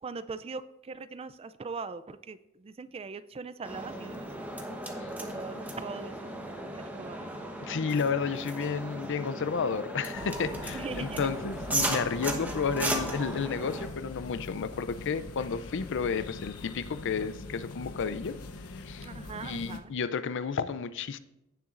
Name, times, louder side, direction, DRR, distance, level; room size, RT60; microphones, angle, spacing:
voice 1, 0.0-4.5 5.2-6.3 6.7-7.3 10.7-11.3 19.0-19.9, right 4 dB, 25° right, 0.3 m, -41 dB
sound 1, 3.6-13.9, right 1 dB, 5° right, 1.0 m, -36 dB
voice 2, 7.6-18.4 18.7-19.1 19.4-21.2, left 5 dB, 55° left, 0.5 m, -32 dB
sound 2, 10.1-19.8, left 2 dB, 85° left, 0.8 m, -43 dB
16.0 x 7.0 x 2.5 m
head